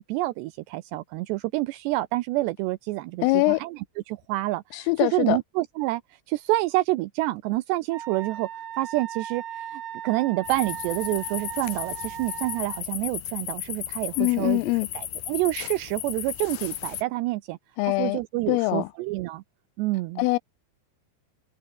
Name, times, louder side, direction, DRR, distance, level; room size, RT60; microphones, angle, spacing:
voice 1, 0.0-3.8 4.1-6.0 6.3-14.6 15.0-17.6 17.9-19.4 19.8-20.2, right 19 dB, 85° right, 2.4 m, -28 dB
voice 2, 3.2-3.6 4.7-5.4 14.2-14.9 17.8-18.2 18.5-18.9 20.2-20.4, left 23 dB, 90° left, 3.3 m, -23 dB
Wind instrument woodwind instrument, 7.9-12.8, right 10 dB, 60° right, 4.0 m, -38 dB
sound 1, 10.4-17.0, left 12 dB, 60° left, 2.7 m, -35 dB
omnidirectional pair, 5.8 m